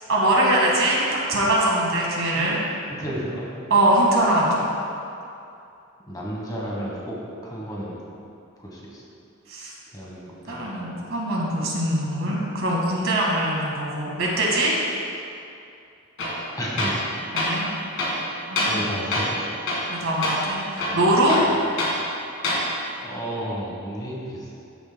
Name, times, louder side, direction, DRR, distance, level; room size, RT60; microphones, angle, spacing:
voice 1, 0.1-2.6 3.7-4.7 9.5-9.7 10.5-14.7 17.3-17.7 18.5-19.0 19.9-21.4, right 1 dB, 60° right, -3 dB, 1.8 m, -22 dB
voice 2, 2.9-3.5 6.1-8.0 8.6-9.0 9.9-11.0 16.5-17.0 17.3-17.6 18.7-20.0 23.0-24.6, equal, 15° left, -4 dB, 1.2 m, -33 dB
Tools, 16.2-16.4 16.8-17.0 17.4-17.5 18.0-18.8 19.1-19.4 19.7-19.9 20.2-20.4 20.8-22.0 22.4-22.6, left 1 dB, 55° left, 1.8 m, -25 dB
13.0 x 6.9 x 2.2 m, 2.6 s
head